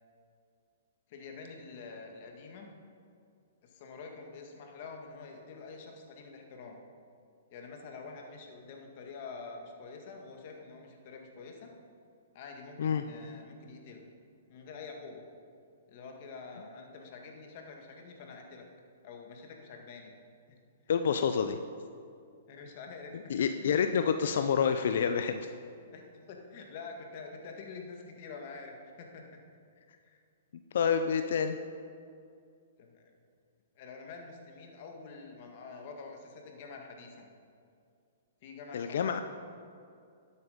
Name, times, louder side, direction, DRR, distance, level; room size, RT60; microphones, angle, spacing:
voice 1, 1.1-2.7 3.6-6.8 7.5-11.7 12.3-14.0 14.5-15.3 15.9-18.7 19.0-20.1 20.5-20.6 22.5-23.8 25.9-29.4 30.0-30.2 32.8-33.1 33.8-37.3 38.4-39.2, left 4 dB, 50° left, 2 dB, 1.9 m, -47 dB
voice 2, 20.9-21.6 23.3-25.5 30.7-31.6 38.7-39.2, left 7 dB, 70° left, 8 dB, 0.5 m, -28 dB
12.0 x 8.2 x 5.2 m, 2.4 s
hypercardioid pair, 135°, 0 cm